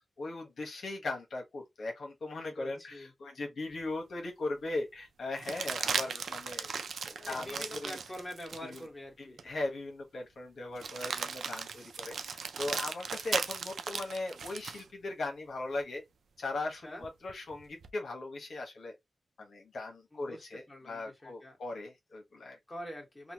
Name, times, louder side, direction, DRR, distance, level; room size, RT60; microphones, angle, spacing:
voice 1, 0.2-6.7 7.1-8.0 8.6-8.9 9.2-16.0 16.4-18.9 19.4-22.6, left 2 dB, 75° left, 1.0 m, -39 dB
voice 2, 2.4-3.1 7.2-9.5 16.6-17.1 20.1-21.6 22.7-23.3, left 1 dB, 20° left, 1.5 m, -45 dB
sound 1, 3.8-3.9 5.4-8.8 9.4-9.5 10.8-14.9 17.0-17.9, right 6 dB, 85° right, 0.4 m, -37 dB
3.0 x 2.2 x 2.8 m
wide cardioid pair, 90°, 0 cm